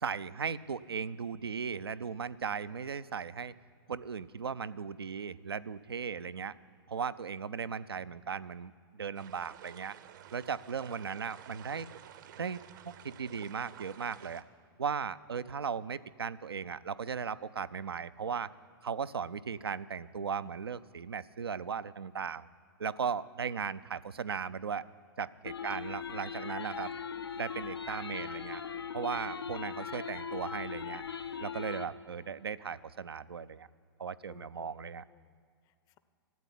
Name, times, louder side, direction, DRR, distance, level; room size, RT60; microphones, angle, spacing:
voice 1, 0.0-3.5 3.9-6.5 6.9-10.0 10.3-11.9 12.4-12.6 12.9-14.4 14.8-18.5 18.8-22.5 22.8-24.9 25.2-26.9 27.4-28.6 28.9-31.0 31.4-33.7 34.0-35.0, right 6 dB, 80° right, 15 dB, 0.4 m, -37 dB
sound 1, 9.2-14.4, right 11 dB, 55° right, 0.7 m, -52 dB
sound 2, 25.5-31.9, left 7 dB, 80° left, 0.7 m, -40 dB
voice 2, 25.6-26.8 34.3-34.7 35.0-36.0, left 10 dB, 30° left, 14 dB, 0.6 m, -61 dB
13.5 x 8.3 x 9.9 m, 2.2 s
figure-of-eight pair, 105°, 13 cm